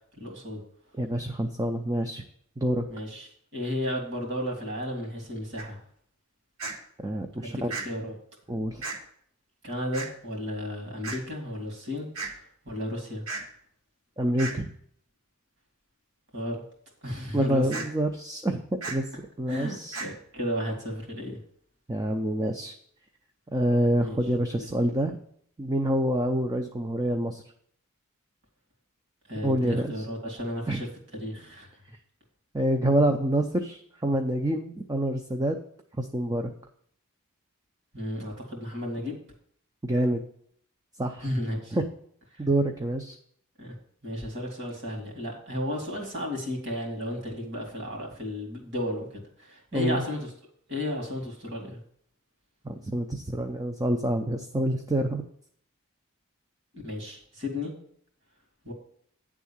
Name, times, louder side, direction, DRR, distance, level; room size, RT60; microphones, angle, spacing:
voice 1, 0.1-0.6 2.9-5.8 7.4-8.2 9.6-12.1 12.6-13.2 16.3-16.6 17.0-17.7 19.5-21.4 24.0-24.2 24.5-24.7 29.3-30.9 31.1-31.7 37.9-39.2 41.2-41.8 43.6-43.7 44.0-50.3 50.7-51.8 56.7-57.7 58.6-58.7, left 1 dB, 55° right, 1 dB, 2.3 m, -33 dB
voice 2, 1.0-2.2 2.6-2.9 7.0-7.7 8.5-8.9 14.2-14.7 17.3-18.6 18.9-19.0 19.4-20.0 21.9-22.8 23.5-25.2 25.6-27.4 29.4-30.0 30.7-30.8 32.5-35.6 36.0-36.5 39.8-40.2 41.0-41.2 41.7-41.8 42.4-43.2 49.7-50.0 52.6-55.2, right 1 dB, 15° right, 3 dB, 0.5 m, -27 dB
sound 1, 5.6-5.7 6.6-6.7 7.7-7.8 8.8-9.0 9.9-10.1 11.0-11.2 12.1-12.3 13.3-13.4 14.4-14.6 17.7-17.9 18.8-19.0 19.9-20.1, right 4 dB, 70° right, 2.4 m, -34 dB
9.4 x 3.6 x 7.1 m, 0.64 s
head